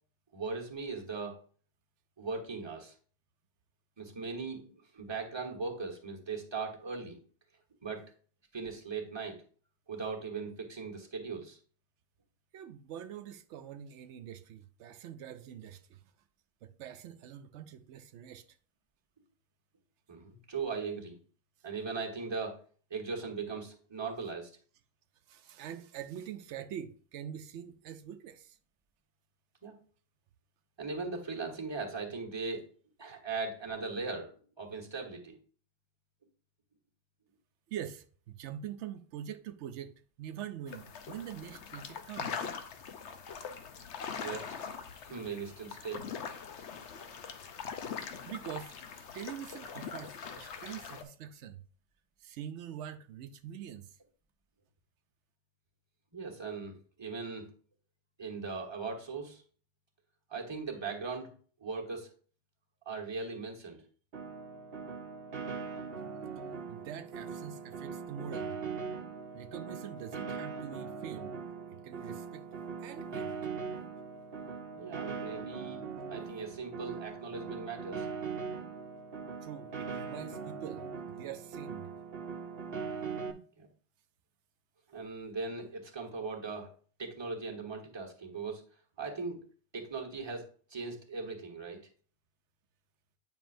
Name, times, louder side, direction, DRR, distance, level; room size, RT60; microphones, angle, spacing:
voice 1, 0.3-1.4 2.2-2.9 4.0-4.6 4.9-7.2 7.8-8.0 8.5-9.4 9.9-11.6 20.1-21.2 21.6-22.6 22.9-24.5 29.6-29.8 30.8-32.7 33.0-34.3 34.6-35.4 44.1-44.6 45.0-46.1 56.1-57.5 58.2-59.4 60.3-61.3 61.6-62.1 62.8-63.8 74.8-75.8 76.1-78.1 83.6-83.7 84.9-86.7 87.0-88.6 89.0-89.4 89.7-91.9, right 4 dB, 25° right, 1.3 m, -39 dB
voice 2, 12.5-16.0 16.6-18.4 25.3-28.6 37.7-42.5 47.8-51.6 52.2-53.9 66.7-68.6 69.3-71.4 71.8-72.5 72.8-73.5 79.4-81.9, right 9 dB, 85° right, 0.9 m, -44 dB
sound 1, 40.7-51.0, left 6 dB, 80° left, 1.0 m, -42 dB
Piano, 64.1-83.3, right 5 dB, 60° right, 0.9 m, -41 dB
9.2 x 5.5 x 2.6 m
omnidirectional pair, 1.2 m